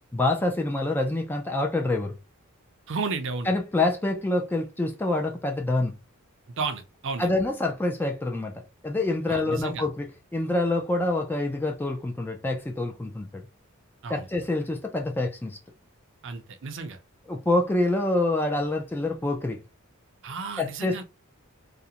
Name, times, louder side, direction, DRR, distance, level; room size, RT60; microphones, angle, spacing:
voice 1, 0.1-2.2 3.5-6.0 7.2-10.1 10.3-13.4 14.1-15.6 17.3-19.6 20.6-21.0, left 2 dB, 10° left, 0.3 m, -26 dB
voice 2, 2.9-3.5 6.5-7.3 9.3-9.9 14.0-14.3 16.2-17.0 20.2-21.0, right 4 dB, 60° right, 0.5 m, -33 dB
2.4 x 2.1 x 2.8 m
head